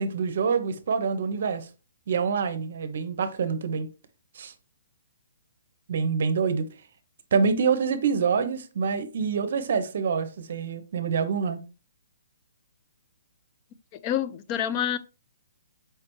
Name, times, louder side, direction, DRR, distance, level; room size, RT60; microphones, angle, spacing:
voice 1, 0.0-1.7 2.1-3.9 4.4-4.5 5.9-6.7 7.3-11.6, right 5 dB, 55° right, 0.7 m, -26 dB
voice 2, 13.9-15.0, left 10 dB, 25° left, 0.3 m, -27 dB
4.6 x 3.3 x 3.0 m
hypercardioid pair, 165°, 0 cm